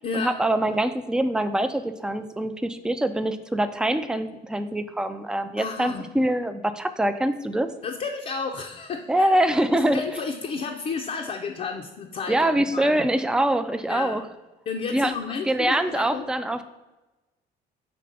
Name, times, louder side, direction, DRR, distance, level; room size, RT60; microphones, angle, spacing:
voice 1, 0.1-7.7 9.1-10.0 12.3-14.2 14.9-15.1 15.5-16.6, right 1 dB, 5° right, 9 dB, 0.3 m, -24 dB
voice 2, 5.6-6.1 7.8-13.0 13.8-14.2 14.7-16.2, left 5 dB, 45° left, 2 dB, 0.6 m, -32 dB
5.3 x 3.3 x 5.4 m, 1.1 s
cardioid pair, 110°, 17 cm